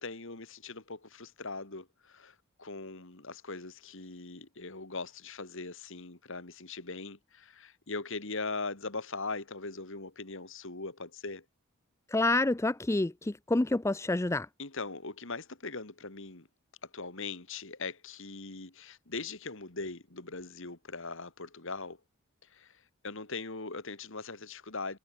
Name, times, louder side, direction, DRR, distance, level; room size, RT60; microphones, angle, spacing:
voice 1, 0.0-11.4 14.6-16.5 16.8-22.0 22.5-22.8 23.0-25.0, left 3 dB, 60° left, 2.6 m, -40 dB
voice 2, 12.1-14.5, left 2 dB, 15° left, 0.4 m, -28 dB
head